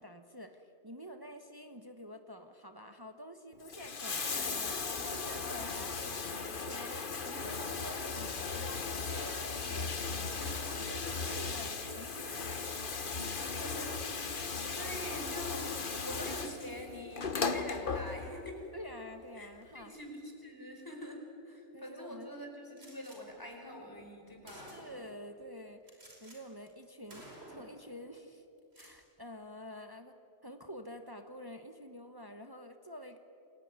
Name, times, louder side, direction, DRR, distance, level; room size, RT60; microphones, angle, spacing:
voice 1, 0.0-9.9 10.3-10.6 10.9-11.0 11.3-12.5 18.7-19.9 21.7-22.4 24.5-28.4 28.8-30.1 30.4-33.2, equal, 20° right, 6 dB, 1.2 m, -48 dB
Bathtub (filling or washing), 3.5-18.5 19.6-19.7, left 4 dB, 50° left, 1.4 m, -37 dB
voice 2, 10.4-11.0 13.6-14.0 14.4-15.7 16.0-18.6 19.4-24.8, left 1 dB, 20° left, 2 dB, 4.7 m, -45 dB
Gunshot gunfire, 22.8-23.2 24.0-24.1 24.5-25.1 25.9-26.4 26.7-26.8 27.1-27.8 28.6-29.0, right 1 dB, 65° right, 5.5 m, -52 dB
29.0 x 21.0 x 9.7 m, 2.9 s
omnidirectional pair, 1.1 m